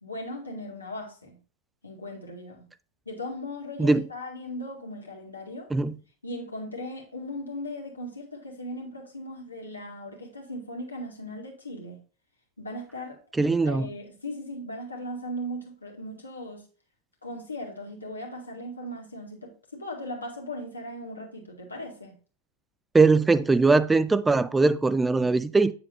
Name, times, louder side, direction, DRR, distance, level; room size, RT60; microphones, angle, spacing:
voice 1, 0.0-1.4 1.8-2.6 3.1-5.7 6.2-12.0 12.6-13.2 13.6-16.7 17.2-22.1, left 1 dB, 80° left, 2.0 m, -38 dB
voice 2, 13.4-13.9 22.9-25.7, right 3 dB, 10° right, 0.3 m, -21 dB
8.4 x 6.8 x 2.7 m
figure-of-eight pair, 90°, 0 cm